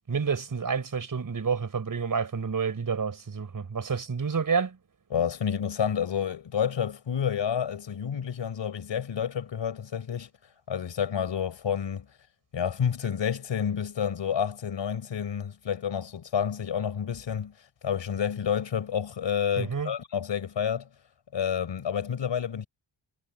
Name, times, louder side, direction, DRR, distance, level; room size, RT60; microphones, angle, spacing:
voice 1, 0.1-4.8 19.6-19.9, right 5 dB, 40° right, 5.1 m, -29 dB
voice 2, 5.1-10.3 10.7-12.1 12.5-17.5 17.8-20.9 21.3-22.7, left 8 dB, 60° left, 5.2 m, -29 dB
wide cardioid pair, 130°, 49 cm